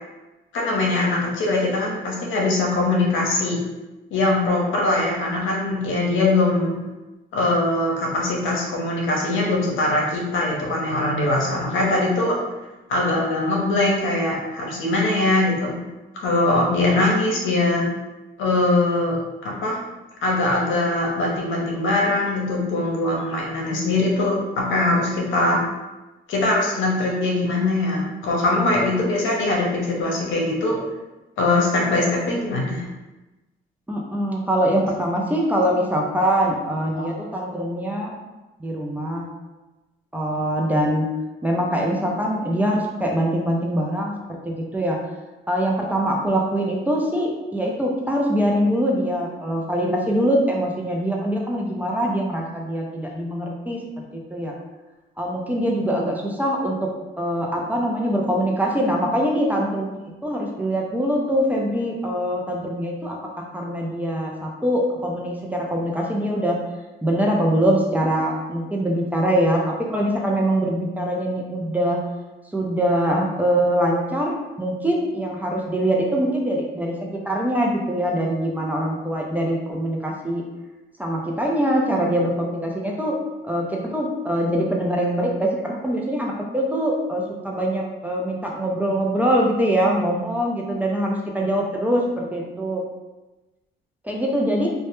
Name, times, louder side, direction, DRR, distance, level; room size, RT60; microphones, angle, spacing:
voice 1, 0.5-3.6 4.1-6.8 7.3-12.4 12.9-15.8 16.1-17.9 18.4-19.2 19.4-19.8 20.2-25.6 26.3-30.8 31.4-32.8 37.0-37.1, left 2 dB, 80° left, -2 dB, 0.7 m, -22 dB
voice 2, 33.9-38.1 38.6-39.3 40.1-41.1 41.4-45.0 45.5-53.8 54.1-54.5 55.2-56.9 57.2-66.6 67.0-72.0 72.5-76.9 77.2-80.4 81.0-83.2 83.4-92.8 94.0-94.7, equal, 10° right, -2 dB, 0.4 m, -23 dB
2.1 x 2.0 x 2.9 m, 1.1 s
cardioid pair, 90°, 20 cm